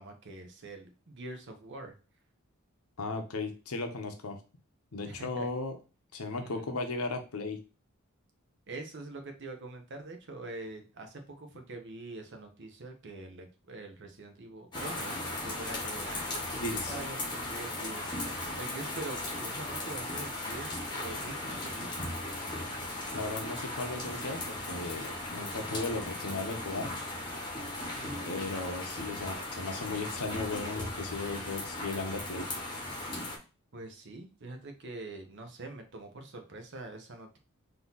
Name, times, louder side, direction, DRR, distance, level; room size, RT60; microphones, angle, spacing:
voice 1, 0.0-2.0 5.1-5.5 6.4-6.8 8.7-16.2 16.8-18.2 18.6-22.1 27.9-28.3 33.7-37.4, right 2 dB, 55° right, 5 dB, 0.9 m, -44 dB
voice 2, 3.0-4.4 4.9-5.8 6.1-7.6 16.5-16.9 23.1-26.9 28.2-32.5, left 3 dB, 80° left, 5 dB, 0.8 m, -36 dB
sound 1, 14.7-33.4, left 2 dB, 20° left, 1.0 m, -37 dB
3.9 x 2.8 x 3.9 m, 0.32 s
head